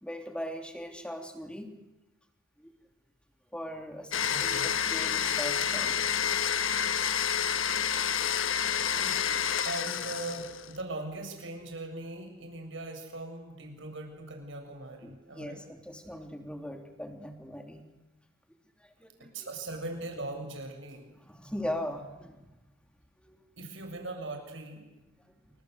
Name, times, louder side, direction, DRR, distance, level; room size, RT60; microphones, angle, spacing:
voice 1, 0.0-1.7 2.6-2.7 3.5-6.0 7.0-7.1 15.0-17.8 18.8-19.5 21.2-22.6 23.2-23.4, equal, 5° left, 5 dB, 3.1 m, -40 dB
Domestic sounds home sounds, 4.1-10.8, left 8 dB, 85° left, 1.3 m, -29 dB
voice 2, 4.3-4.7 8.9-15.6 19.3-21.0 23.6-24.9, right 2 dB, 70° right, 3 dB, 7.2 m, -40 dB
29.0 x 24.5 x 8.2 m, 1.0 s
head